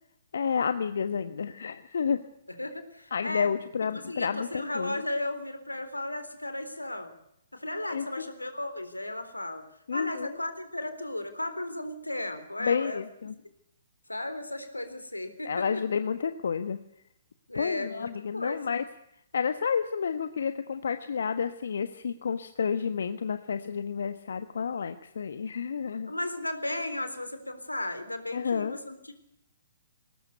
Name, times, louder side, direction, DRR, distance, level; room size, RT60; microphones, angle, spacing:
voice 1, 0.3-2.2 3.1-4.9 7.9-8.3 9.9-10.3 12.6-13.3 15.5-16.8 17.5-18.8 19.3-26.1 28.3-28.8, left 6 dB, 65° left, 10 dB, 1.2 m, -30 dB
voice 2, 2.6-3.5 3.9-7.1 7.5-9.7 9.9-13.0 14.1-15.8 17.5-18.8 26.1-29.1, left 1 dB, 90° left, 10 dB, 3.8 m, -35 dB
21.0 x 19.0 x 8.2 m, 0.76 s
figure-of-eight pair, 125°, 0 cm